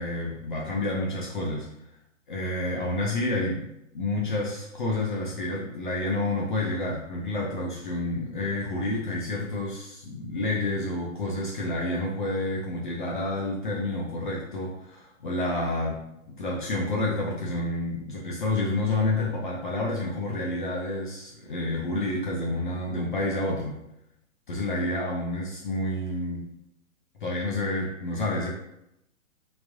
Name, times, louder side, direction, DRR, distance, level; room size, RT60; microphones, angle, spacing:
voice 1, 0.0-1.7 2.3-16.0 16.4-23.7 24.5-26.4 27.2-28.5, left 2 dB, 35° left, -3 dB, 0.7 m, -29 dB
4.2 x 4.0 x 2.6 m, 0.82 s
figure-of-eight pair, 125°, 41 cm